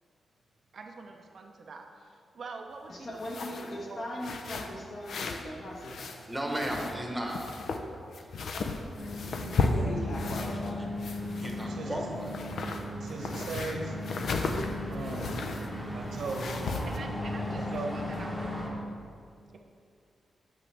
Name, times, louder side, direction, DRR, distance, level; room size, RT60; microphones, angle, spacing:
voice 1, 0.7-4.0 16.9-18.6 19.5-19.6, right 4 dB, 55° right, 3 dB, 0.5 m, -46 dB
voice 2, 2.9-6.2 9.7-10.9, left 1 dB, 50° left, -2 dB, 1.3 m, -39 dB
sound 1, 3.1-3.7 4.2-5.5 5.7-7.0 7.3-10.7 11.0-11.9 12.2-15.7 16.2-17.0, left 3 dB, 65° left, 0.5 m, -34 dB
voice 3, 6.3-7.4 8.2-8.3 10.0-10.1 11.4-12.3, right 1 dB, 5° right, 0 dB, 1.0 m, -34 dB
sound 2, 9.0-18.7, left 1 dB, 20° left, 1.2 m, -37 dB
voice 4, 11.7-12.1 13.0-14.0 14.9-15.5 15.9-16.6 17.7-18.0, right 3 dB, 75° right, 1 dB, 1.1 m, -37 dB
8.4 x 6.7 x 3.3 m, 2.4 s
wide cardioid pair, 140°, 0 cm